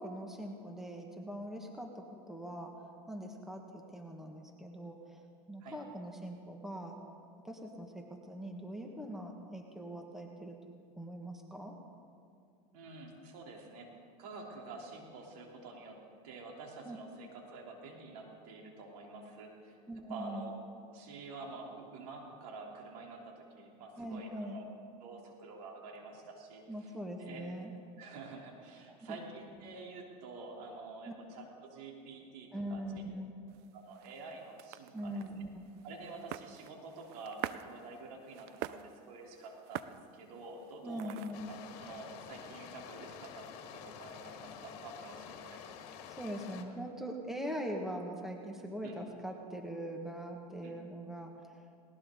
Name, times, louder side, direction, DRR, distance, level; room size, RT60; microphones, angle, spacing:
voice 1, 0.0-7.0 7.4-10.6 11.0-11.8 16.9-17.0 19.9-20.5 24.0-24.6 26.7-27.8 28.9-29.2 32.5-33.3 34.9-35.6 40.8-41.5 46.1-51.6, equal, ahead, 2 dB, 1.8 m, -42 dB
voice 2, 12.7-13.9 14.2-16.0 16.2-19.8 20.1-20.6 20.9-24.6 25.0-27.6 28.0-33.0 33.7-35.4 35.8-45.6 48.8-49.0 50.6-50.7, right 3 dB, 70° right, -1 dB, 3.6 m, -48 dB
sound 1, 33.5-41.6, right 13 dB, 55° right, 0.6 m, -47 dB
sound 2, 41.3-46.6, left 8 dB, 65° left, 1.8 m, -49 dB
19.0 x 19.0 x 3.9 m, 2.4 s
supercardioid pair, 110°, 20 cm